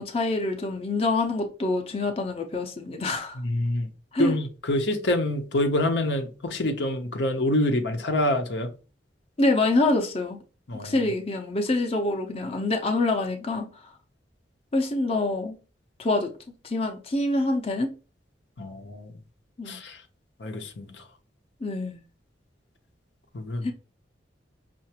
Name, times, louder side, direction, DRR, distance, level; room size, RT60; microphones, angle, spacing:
voice 1, 0.0-3.4 4.1-4.3 9.4-10.4 10.8-13.7 14.7-15.6 16.0-16.3 16.6-17.9 19.6-19.8 21.6-22.0 23.6-23.7, left 2 dB, 35° left, 0.6 m, -26 dB
voice 2, 3.4-3.9 4.2-8.7 10.7-11.0 18.6-19.2 19.7-20.0 20.4-20.9 23.3-23.7, left 1 dB, 70° left, 0.8 m, -26 dB
5.6 x 2.5 x 2.9 m
head